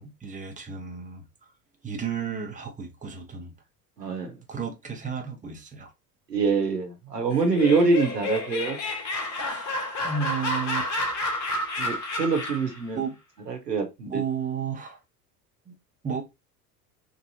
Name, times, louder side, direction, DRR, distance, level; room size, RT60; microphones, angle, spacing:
voice 1, 0.0-1.5 1.8-3.5 4.5-5.9 9.5-9.8 10.0-10.9 12.9-13.2 14.1-15.0 15.7-15.8 16.0-16.2, right 6 dB, 15° right, 0.8 m, -33 dB
voice 2, 4.0-4.4 6.3-8.8 11.8-13.0 13.5-14.2, right 4 dB, 85° right, 0.9 m, -25 dB
Laughter, 7.3-12.8, left 1 dB, 35° left, 1.1 m, -30 dB
3.6 x 2.6 x 2.6 m
figure-of-eight pair, 70°, 47 cm